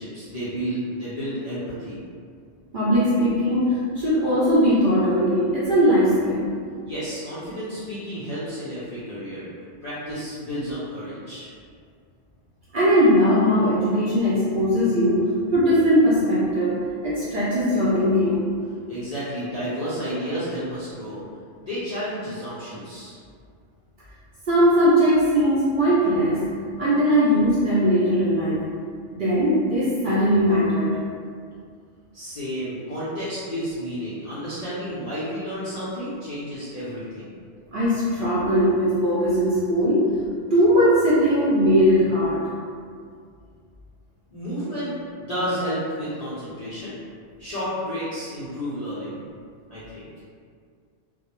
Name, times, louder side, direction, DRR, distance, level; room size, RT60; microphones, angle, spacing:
voice 1, 0.0-2.0 6.8-9.5 9.8-11.5 18.9-21.2 21.6-23.2 32.1-37.3 44.3-44.9 45.2-47.0 47.4-49.2 49.7-50.1, equal, 55° left, -11 dB, 0.4 m, -31 dB
voice 2, 2.7-6.5 12.7-18.4 24.5-26.5 26.8-28.7 29.1-30.9 37.7-40.1 40.5-42.4, equal, 60° right, -9 dB, 0.5 m, -20 dB
2.2 x 2.0 x 2.9 m, 2.1 s
omnidirectional pair, 1.3 m